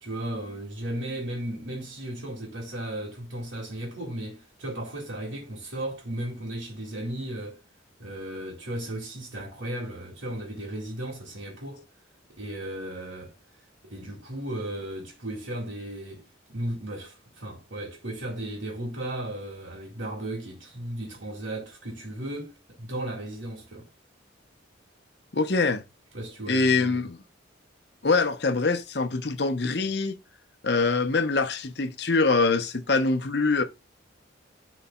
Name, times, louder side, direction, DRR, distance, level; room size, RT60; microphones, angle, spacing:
voice 1, 0.0-7.6 8.0-11.8 12.4-13.3 13.8-23.9 26.1-27.1, right 1 dB, 80° right, 2.3 m, -35 dB
voice 2, 25.3-25.8 26.5-27.2 28.0-30.2 30.6-33.6, left 3 dB, 55° left, 0.8 m, -24 dB
11.0 x 4.1 x 2.3 m
head